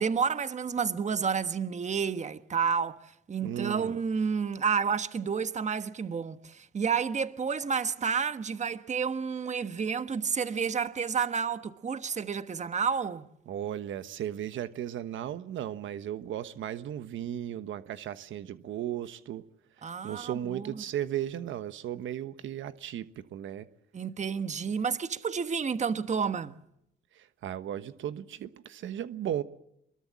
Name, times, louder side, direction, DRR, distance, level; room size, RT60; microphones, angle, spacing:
voice 1, 0.0-3.0 3.3-13.3 19.8-20.8 23.9-26.6, right 6 dB, 35° right, 1.3 m, -30 dB
voice 2, 3.4-4.0 13.5-19.4 20.0-23.7 27.1-29.4, right 11 dB, 75° right, 1.2 m, -36 dB
25.0 x 22.0 x 7.5 m
cardioid pair, 90°, 20 cm